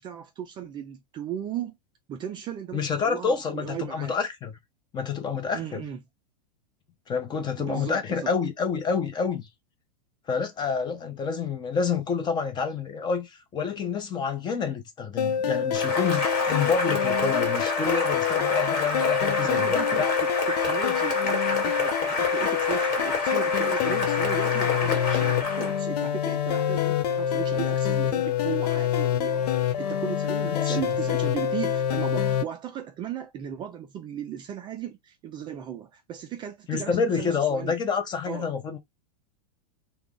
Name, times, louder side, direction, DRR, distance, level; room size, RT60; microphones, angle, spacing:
voice 1, 0.0-1.8 2.1-4.1 5.5-6.0 7.6-8.3 19.4-37.7 38.3-38.5, right 10 dB, 25° right, 0.3 m, -36 dB
voice 2, 2.7-4.6 4.9-5.8 7.1-9.5 10.3-20.1 30.5-30.8 36.7-38.8, left 5 dB, 20° left, 0.6 m, -28 dB
sound 1, 15.2-32.4, left 8 dB, 75° left, 0.5 m, -26 dB
Cheering / Applause, 15.7-25.8, left 3 dB, 45° left, 1.4 m, -28 dB
2.4 x 2.0 x 3.5 m
hypercardioid pair, 125°, 20 cm